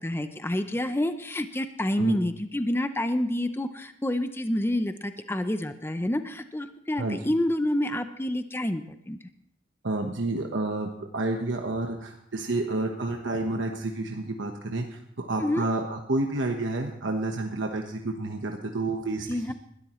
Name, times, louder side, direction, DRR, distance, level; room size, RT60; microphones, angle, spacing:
voice 1, 0.0-9.2 15.4-15.7 19.3-19.5, left 1 dB, 10° left, 9 dB, 0.6 m, -28 dB
voice 2, 9.8-19.5, right 2 dB, 90° right, 2 dB, 1.2 m, -30 dB
20.5 x 13.0 x 3.1 m, 0.70 s
head